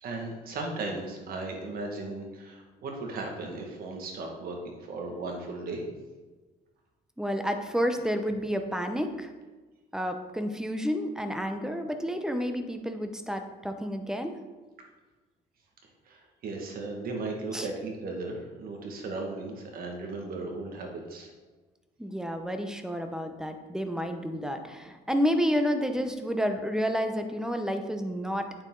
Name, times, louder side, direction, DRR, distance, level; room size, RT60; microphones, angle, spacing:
voice 1, 0.0-5.9 16.1-21.3, right 3 dB, 60° right, 1 dB, 1.9 m, -36 dB
voice 2, 7.2-9.3 9.9-14.4 17.5-17.7 22.0-28.5, equal, 5° right, 6 dB, 0.8 m, -30 dB
8.9 x 7.0 x 3.9 m, 1.3 s
cardioid pair, 110°, 17 cm